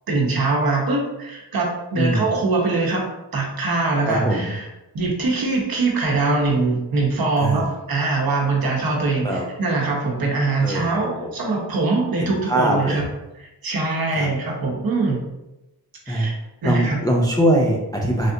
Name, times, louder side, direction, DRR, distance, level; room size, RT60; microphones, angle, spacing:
voice 1, 0.1-3.0 3.3-4.7 4.9-13.1 13.4-15.2 16.1-16.3 16.6-17.0, right 3 dB, 55° right, -1 dB, 0.9 m, -22 dB
voice 2, 4.1-4.5 7.4-7.6 9.2-9.5 10.6-10.9 11.2-11.3 12.2-13.0 14.1-14.3 16.1-16.3 16.6-18.3, right 1 dB, 10° left, -1 dB, 0.3 m, -21 dB
3.3 x 2.4 x 2.7 m, 0.96 s
wide cardioid pair, 90°, 43 cm